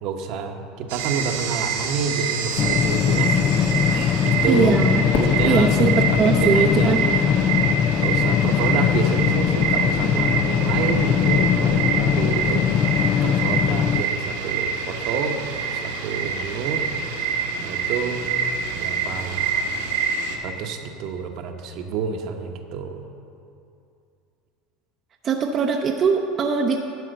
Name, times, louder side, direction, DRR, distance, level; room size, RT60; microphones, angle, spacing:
voice 1, 0.0-3.4 3.9-4.8 5.2-7.5 8.0-12.7 13.2-15.4 15.7-16.9 17.6-18.3 18.7-19.6 20.4-23.0, right 5 dB, 60° right, 4 dB, 1.0 m, -29 dB
sound 1, 0.9-20.4, right 5 dB, 85° right, 1.5 m, -26 dB
sound 2, 2.6-14.0, left 9 dB, 45° left, 0.4 m, -21 dB
voice 2, 4.5-5.0 5.4-7.0 25.2-26.8, right 5 dB, 40° right, 2 dB, 0.7 m, -21 dB
Fireworks, 5.1-7.4, left 2 dB, 65° left, 1.9 m, -31 dB
11.5 x 4.9 x 7.8 m, 2.5 s
supercardioid pair, 100°, 0 cm